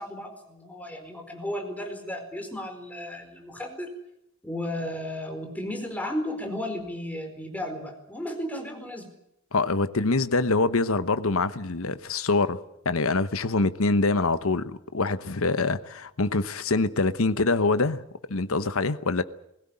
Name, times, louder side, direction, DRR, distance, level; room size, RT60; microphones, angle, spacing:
voice 1, 0.0-3.9 4.4-9.1, left 1 dB, 5° left, 4.4 m, -34 dB
voice 2, 9.5-18.0 18.3-19.2, left 3 dB, 75° left, 1.0 m, -25 dB
21.5 x 16.5 x 9.9 m
head